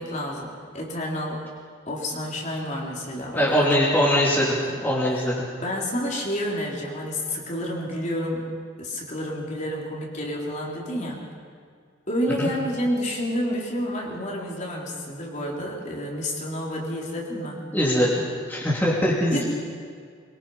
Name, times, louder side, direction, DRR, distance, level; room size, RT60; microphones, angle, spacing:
voice 1, 0.0-1.4 1.9-4.3 4.6-4.8 5.1-5.2 5.6-11.3 12.1-17.6 19.3-19.4, equal, 35° left, -2 dB, 3.8 m, -30 dB
voice 2, 3.3-4.6 4.8-5.4 12.4-12.5 17.7-18.1 18.5-19.4, equal, 10° left, -6 dB, 3.1 m, -21 dB
23.5 x 23.0 x 5.7 m, 2.1 s
head